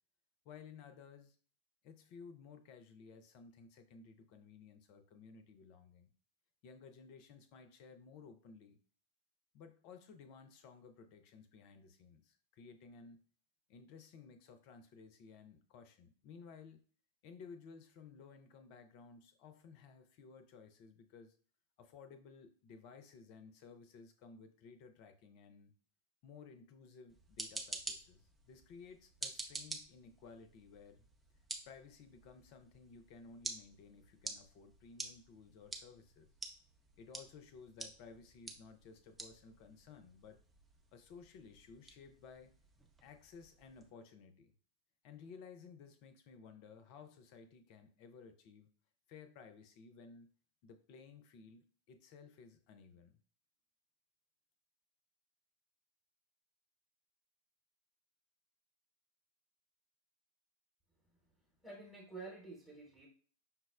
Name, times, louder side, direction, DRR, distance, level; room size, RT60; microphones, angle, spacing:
voice 1, 0.4-1.4 1.8-6.1 6.6-8.8 9.5-13.2 13.7-16.8 17.2-21.3 21.8-25.7 26.2-31.0 31.7-36.3 37.0-40.4 40.9-42.5 43.0-44.5 45.0-48.7 49.1-50.3 50.6-53.2, left 5 dB, 45° left, 8 dB, 0.5 m, -56 dB
sound 1, 27.1-43.9, right 3 dB, 10° right, 0.5 m, -50 dB
voice 2, 61.6-63.1, right 3 dB, 5° left, -4 dB, 0.9 m, -50 dB
5.6 x 2.0 x 2.3 m, 0.43 s
figure-of-eight pair, 90°, 0 cm